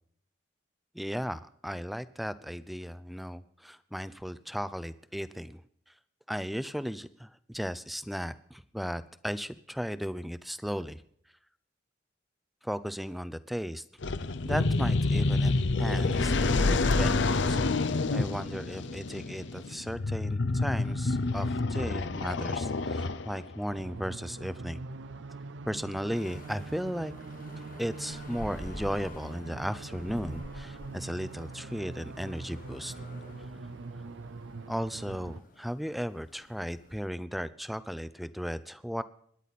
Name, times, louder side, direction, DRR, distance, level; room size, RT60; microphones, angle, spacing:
voice 1, 0.9-5.6 6.3-11.0 12.6-13.8 14.4-17.6 18.1-24.8 25.7-27.1 27.8-32.9 34.7-39.0, equal, ahead, 14 dB, 0.5 m, -35 dB
sound 1, 14.0-23.5, left 3 dB, 75° left, 0.7 m, -28 dB
sound 2, 23.7-35.4, right 3 dB, 80° right, 0.6 m, -43 dB
sound 3, 26.1-37.1, left 1 dB, 45° left, 1.1 m, -49 dB
25.5 x 11.0 x 4.2 m, 0.66 s
head